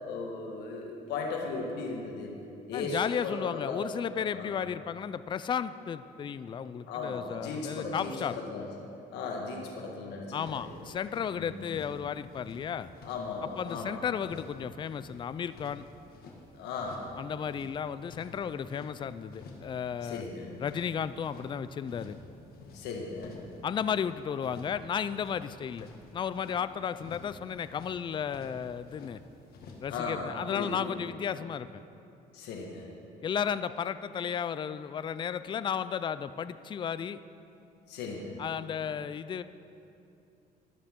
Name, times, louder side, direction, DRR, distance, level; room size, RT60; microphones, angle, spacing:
voice 1, 0.1-2.4 2.7-3.9 4.3-4.5 6.9-8.6 9.1-10.7 11.3-11.5 13.0-14.0 16.5-17.0 20.0-20.6 22.7-23.4 29.9-31.0 32.3-32.9 37.9-38.4, left 4 dB, 85° left, 0 dB, 1.5 m, -37 dB
voice 2, 2.7-8.4 10.3-12.9 13.4-15.8 17.2-20.2 20.6-22.2 23.6-25.9 26.1-29.2 29.8-31.8 33.2-37.2 38.4-39.4, left 8 dB, 30° left, 14 dB, 0.4 m, -34 dB
sound 1, 10.4-11.3 11.6-12.0 12.3-13.8 14.2-14.6 14.8-16.4 16.7-17.1 17.4-18.9 19.3-19.7 20.0-21.5 21.8-22.3 22.5-24.0 24.4-24.8 25.1-26.6 27.0-27.4 27.6-28.0 28.3-29.1 29.5-29.9, left 3 dB, 65° left, 1.8 m, -50 dB
13.5 x 11.5 x 3.7 m, 2.7 s
cardioid pair, 110°, 17 cm